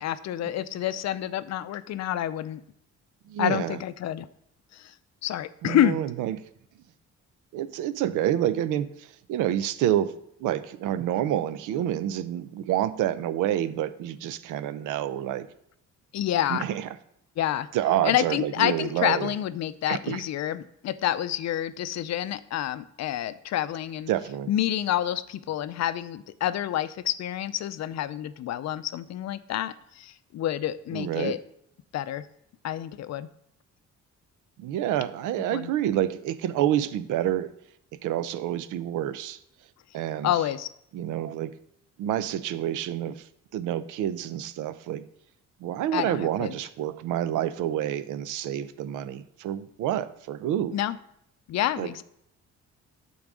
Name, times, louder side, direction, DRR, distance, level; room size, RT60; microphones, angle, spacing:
voice 1, 0.0-2.6 3.4-4.3 4.7-4.9 5.2-6.0 16.1-16.6 17.4-17.7 18.0-24.1 24.5-31.4 31.9-32.3 32.6-33.3 35.5-35.7 40.2-40.7 45.9-46.5 50.7-51.0 51.5-52.0, left 12 dB, 60° left, 14 dB, 0.5 m, -28 dB
voice 2, 3.3-3.8 5.6-6.4 7.5-15.5 16.5-16.9 17.7-19.3 19.9-20.2 24.1-24.5 30.9-31.4 34.6-37.5 38.0-39.4 39.9-40.3 40.9-41.5 42.0-43.2 43.5-45.1 45.6-50.8 51.8-51.9, right 11 dB, 90° right, 14 dB, 0.6 m, -28 dB
8.6 x 3.9 x 6.1 m, 0.74 s
cardioid pair, 90°, 30 cm